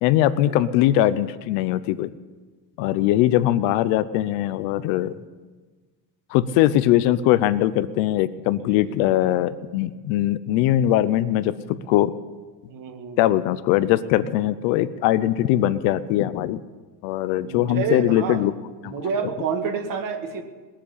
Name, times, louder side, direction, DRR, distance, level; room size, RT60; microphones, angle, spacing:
voice 1, 0.0-2.1 2.8-5.2 6.3-11.5 11.9-12.1 13.2-16.6 17.0-18.5 18.8-19.3, left 13 dB, 90° left, 14 dB, 0.8 m, -21 dB
voice 2, 12.7-13.2 17.5-18.4 18.9-20.4, right 6 dB, 45° right, 6 dB, 1.9 m, -28 dB
20.0 x 7.7 x 8.4 m, 1.3 s
cardioid pair, 135°, 44 cm